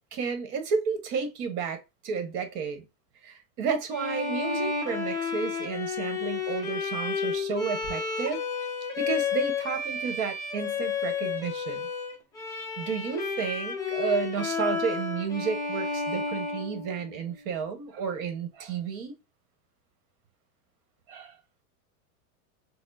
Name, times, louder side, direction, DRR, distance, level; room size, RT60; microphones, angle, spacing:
voice 1, 0.1-2.8 3.2-8.4 9.0-11.8 12.8-19.2 21.1-21.4, right 6 dB, 55° right, 1.1 m, -32 dB
Bowed string instrument, 3.9-17.4, left 5 dB, 10° left, 0.3 m, -31 dB
4.1 x 2.0 x 2.5 m
supercardioid pair, 130°, 45 cm